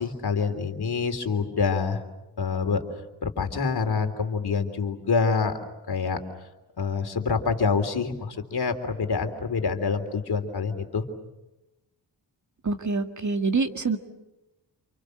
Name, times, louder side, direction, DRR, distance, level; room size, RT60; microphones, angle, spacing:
voice 1, 0.0-2.0 2.4-2.8 3.2-5.5 5.9-6.2 6.8-11.0, left 5 dB, 60° left, 7 dB, 3.4 m, -26 dB
voice 2, 12.6-14.0, right 4 dB, 45° right, 6 dB, 2.1 m, -26 dB
29.5 x 28.0 x 6.6 m, 0.98 s
wide cardioid pair, 90°, 42 cm